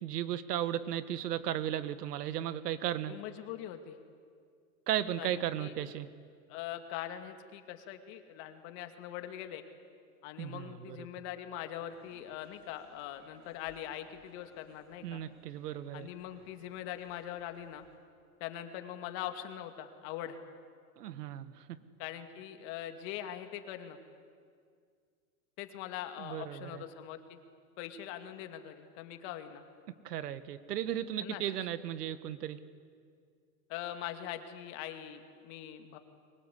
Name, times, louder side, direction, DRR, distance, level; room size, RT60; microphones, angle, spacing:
voice 1, 0.0-3.1 4.9-6.1 10.4-11.0 15.0-16.1 21.0-21.7 26.2-26.8 30.0-32.6, right 11 dB, 85° right, 13 dB, 1.7 m, -35 dB
voice 2, 3.1-4.0 5.2-5.7 6.5-9.6 10.2-15.2 15.9-17.8 18.4-20.4 22.0-24.0 25.6-27.4 27.8-29.6 31.2-31.4 33.7-36.0, left 11 dB, 45° left, 7 dB, 2.4 m, -42 dB
sound 1, 11.9-18.0, right 2 dB, 35° right, 7.2 m, -65 dB
29.5 x 23.5 x 8.4 m, 2.1 s
supercardioid pair, 150°, 46 cm